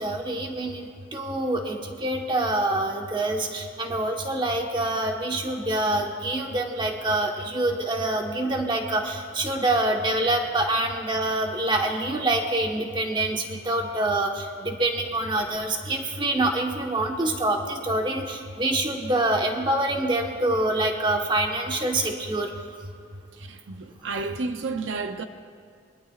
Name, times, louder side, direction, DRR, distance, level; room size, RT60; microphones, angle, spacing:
voice 1, 0.0-22.5, right 2 dB, 25° right, 1.2 m, -26 dB
voice 2, 23.3-25.2, right 3 dB, 75° right, 0.6 m, -31 dB
23.0 x 22.0 x 2.4 m
head